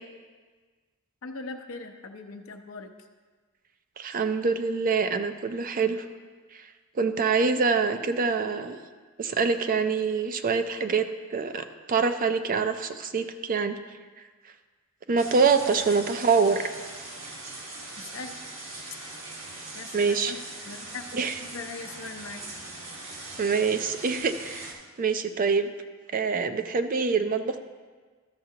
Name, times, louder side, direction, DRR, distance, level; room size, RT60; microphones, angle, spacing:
voice 1, 1.2-2.9 18.0-18.3 19.7-20.4 20.7-21.0 21.5-22.4, left 4 dB, 70° left, 6 dB, 0.7 m, -40 dB
voice 2, 4.0-6.0 6.5-6.6 7.0-8.8 9.2-11.1 11.3-13.8 15.1-16.6 19.9-20.3 21.1-21.4 23.4-25.7 26.1-27.6, right 5 dB, 40° right, 8 dB, 0.4 m, -25 dB
sound 1, 15.2-24.7, right 2 dB, 65° right, 1.4 m, -41 dB
13.0 x 6.7 x 2.8 m, 1.4 s
head